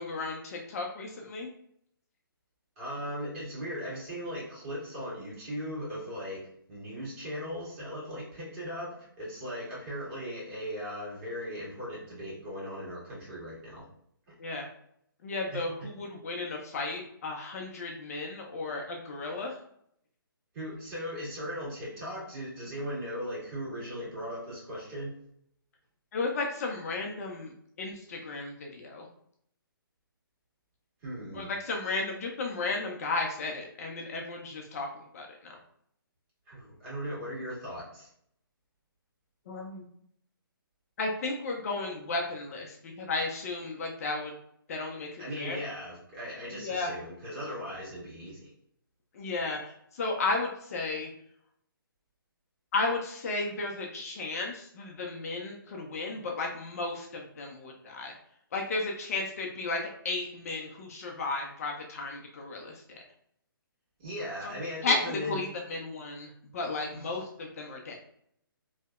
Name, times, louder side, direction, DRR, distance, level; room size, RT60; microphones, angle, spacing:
voice 1, 0.0-1.5 14.4-14.7 15.2-19.6 26.1-27.5 27.8-29.1 31.3-34.9 35.1-35.6 39.5-39.8 41.0-44.3 44.7-45.6 46.6-46.9 49.1-51.1 52.7-58.1 58.5-63.0 64.4-64.5 64.8-67.9, left 3 dB, 40° left, 1 dB, 0.4 m, -34 dB
voice 2, 2.8-6.4 6.7-13.8 15.5-15.9 20.5-25.1 31.0-31.5 36.5-38.1 45.2-48.5 64.0-65.4 66.9-67.1, equal, 35° right, -7 dB, 1.5 m, -38 dB
2.7 x 2.0 x 2.2 m, 0.69 s
hypercardioid pair, 145°, 12 cm